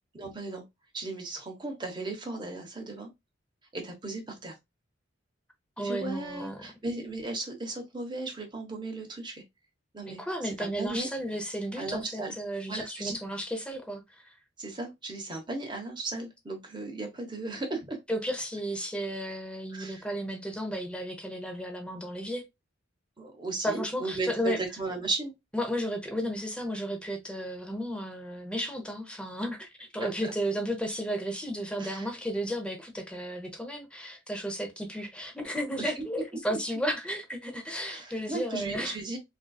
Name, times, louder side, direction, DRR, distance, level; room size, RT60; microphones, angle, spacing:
voice 1, 0.1-0.6 0.9-3.1 3.7-4.5 5.8-9.4 9.9-11.1 11.8-12.3 12.7-13.2 14.6-18.0 19.7-20.0 23.2-25.3 27.4-27.5 30.0-30.1 31.8-32.1 35.8-36.0 36.3-36.6 37.9-39.2, right 3 dB, 25° right, 1.0 m, -36 dB
voice 2, 5.8-6.6 10.1-14.3 18.1-22.4 23.6-24.6 25.5-39.0, equal, 5° left, 0.8 m, -33 dB
3.8 x 2.6 x 2.3 m
head